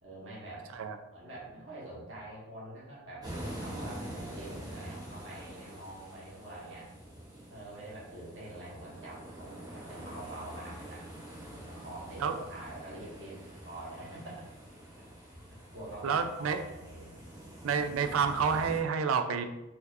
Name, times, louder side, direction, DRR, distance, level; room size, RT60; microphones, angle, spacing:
voice 1, 0.0-0.7 1.1-3.3 3.6-6.9 7.5-11.0 11.5-14.5 15.5-17.1, right 1 dB, 65° right, -6 dB, 1.3 m, -45 dB
sound 1, 3.2-18.8, right 1 dB, 20° right, 0.7 m, -46 dB
voice 2, 16.0-16.6 17.6-19.4, right 6 dB, 85° right, 8 dB, 0.4 m, -29 dB
4.2 x 2.7 x 2.5 m, 0.95 s
head